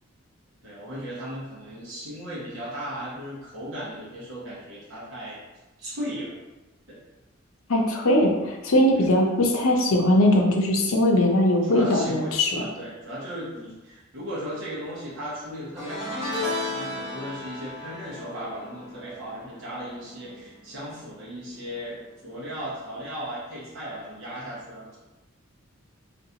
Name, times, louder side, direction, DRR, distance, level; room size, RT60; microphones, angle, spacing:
voice 1, 0.6-5.4 5.8-6.3 6.9-7.0 9.0-9.1 11.6-22.0 22.2-25.0, equal, 65° right, -8 dB, 1.0 m, -36 dB
voice 2, 7.7-12.6, left 1 dB, 85° left, 0 dB, 0.6 m, -20 dB
sound 1, 15.8-21.2 21.4-21.8 23.0-23.1, left 2 dB, 15° right, 1.3 m, -35 dB
3.8 x 2.6 x 2.8 m, 1.1 s
head